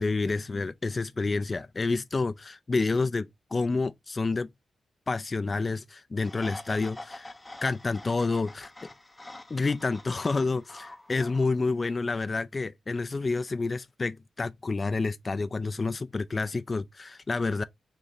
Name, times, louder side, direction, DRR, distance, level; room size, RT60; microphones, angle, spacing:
voice 1, 0.0-4.5 5.1-7.3 7.6-8.9 9.5-17.6, left 3 dB, 35° left, 0.3 m, -29 dB
sound 1, 6.2-11.9, left 2 dB, 20° left, 0.7 m, -46 dB
4.0 x 3.2 x 3.9 m
cardioid pair, 65°, 0 cm